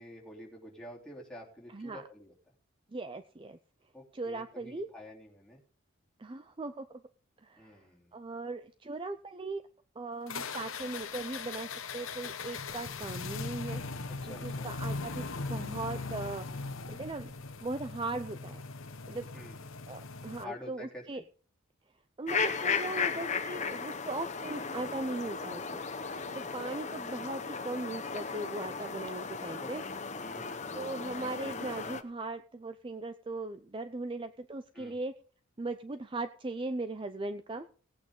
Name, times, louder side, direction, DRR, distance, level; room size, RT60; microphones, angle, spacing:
voice 1, 0.0-2.5 3.9-5.6 7.6-8.1 14.2-14.7 19.3-19.6 20.3-21.2 29.6-29.7 30.2-31.4 34.7-35.0, left 1 dB, 5° left, -4 dB, 3.0 m, -49 dB
voice 2, 2.9-3.6 4.1-4.9 6.2-6.9 7.4-7.8 8.1-9.6 10.0-17.3 17.6-18.6 19.1-19.3 19.9-21.2 22.2-29.8 30.7-35.1 35.6-37.7, right 2 dB, 25° right, 10 dB, 0.5 m, -39 dB
sound 1, 10.3-20.4, left 4 dB, 75° left, 1.1 m, -39 dB
sound 2, 22.3-32.0, left 5 dB, 35° left, 0.9 m, -36 dB
17.5 x 8.6 x 3.7 m, 0.40 s
head